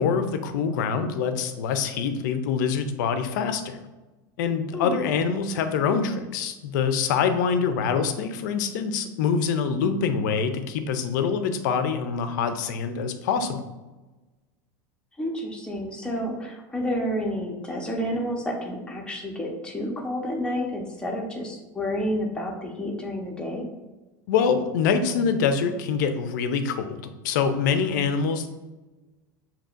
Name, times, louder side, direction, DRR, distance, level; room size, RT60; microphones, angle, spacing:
voice 1, 0.0-3.8 4.4-13.6 24.3-28.5, left 6 dB, 75° left, 9 dB, 0.5 m, -25 dB
voice 2, 4.7-5.0 15.2-23.6, equal, 10° left, -1 dB, 1.0 m, -30 dB
6.9 x 2.9 x 2.5 m, 1.1 s
supercardioid pair, 110°, 10 cm